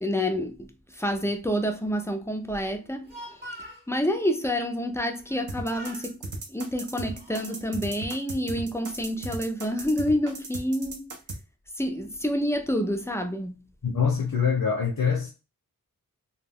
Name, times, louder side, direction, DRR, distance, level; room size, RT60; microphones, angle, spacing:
voice 1, 0.0-3.5 3.9-11.1 11.8-13.7, equal, 10° left, 0.4 m, -28 dB
Speech, 2.8-3.9 5.2-5.4 5.7-6.1 6.8-7.6, equal, 30° right, 0.8 m, -43 dB
sound 1, 5.5-11.4, right 2 dB, 60° right, 0.6 m, -36 dB
voice 2, 13.8-15.3, left 6 dB, 65° left, 0.6 m, -24 dB
2.2 x 2.1 x 3.4 m
wide cardioid pair, 75°, 35 cm